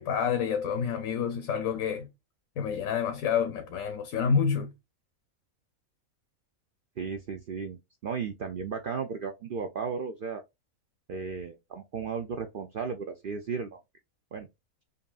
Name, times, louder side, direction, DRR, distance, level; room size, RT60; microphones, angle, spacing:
voice 1, 0.0-2.1 2.6-4.7, left 7 dB, 75° left, 1.1 m, -28 dB
voice 2, 7.0-10.4 11.1-13.8 14.3-14.5, right 5 dB, 65° right, 0.5 m, -35 dB
5.3 x 2.6 x 2.3 m
omnidirectional pair, 1.5 m